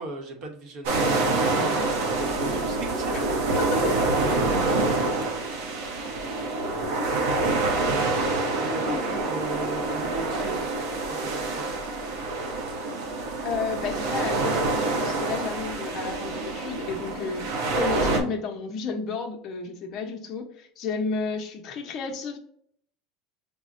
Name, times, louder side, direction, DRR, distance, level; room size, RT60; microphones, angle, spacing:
voice 1, 0.0-5.6 8.6-11.7, right 3 dB, 50° right, 4 dB, 0.9 m, -38 dB
sound 1, 0.8-18.2, right 2 dB, 90° right, 0.7 m, -26 dB
voice 2, 7.0-7.5 8.6-9.3 13.4-22.4, left 5 dB, 40° left, 2 dB, 0.6 m, -32 dB
5.9 x 2.1 x 2.5 m, 0.67 s
supercardioid pair, 130°, 0 cm